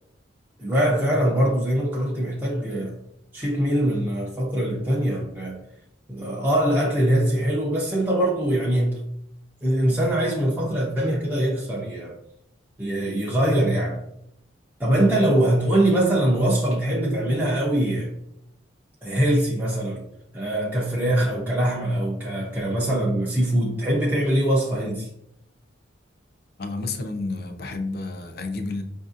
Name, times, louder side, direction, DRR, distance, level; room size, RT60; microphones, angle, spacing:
voice 1, 0.6-2.9 3.3-5.6 6.1-9.0 9.6-12.2 12.8-14.0 14.8-18.1 19.0-20.0 20.3-25.1, right 1 dB, 10° right, 0.5 m, -22 dB
voice 2, 26.6-28.8, left 3 dB, 50° left, 0.5 m, -30 dB
5.6 x 2.6 x 2.4 m
head